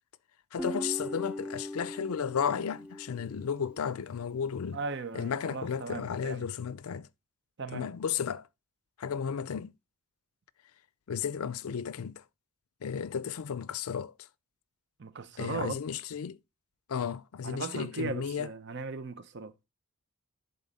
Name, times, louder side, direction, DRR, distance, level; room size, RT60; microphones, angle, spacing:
voice 1, 0.5-4.8 5.1-7.1 7.7-8.5 9.0-9.7 11.1-12.2 12.8-14.1 15.4-16.4 16.9-18.5, left 7 dB, 75° left, 0.4 m, -33 dB
Guitar, 0.6-3.9, left 1 dB, 5° right, 0.4 m, -40 dB
voice 2, 4.7-6.5 7.6-7.9 15.0-15.8 17.4-19.5, right 4 dB, 50° right, 0.8 m, -37 dB
10.5 x 4.0 x 4.0 m
head